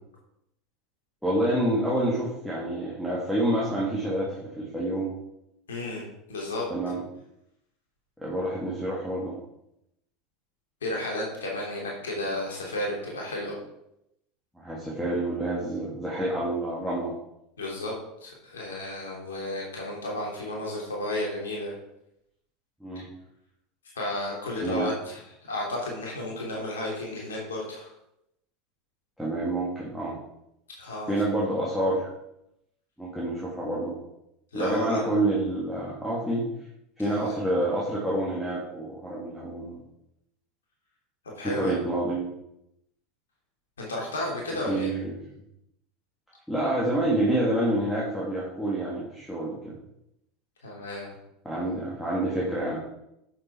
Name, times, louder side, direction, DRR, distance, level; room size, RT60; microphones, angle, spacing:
voice 1, 1.2-5.1 6.7-7.0 8.2-9.4 14.6-17.1 22.8-23.1 24.6-24.9 29.2-30.2 31.1-32.1 33.0-33.9 34.5-36.5 37.0-39.8 41.4-42.3 44.7-45.1 46.5-49.7 51.4-52.8, right 1 dB, ahead, -7 dB, 2.9 m, -28 dB
voice 2, 5.7-6.0 6.3-6.6 10.8-13.6 17.6-17.9 18.2-21.7 22.9-23.0 23.9-27.9 30.8-31.1 34.5-35.1 37.0-37.4 41.4-41.8 43.8-44.9 50.6-51.1, left 1 dB, 75° left, -2 dB, 3.2 m, -32 dB
8.3 x 7.6 x 4.9 m, 0.83 s
figure-of-eight pair, 75°, 0 cm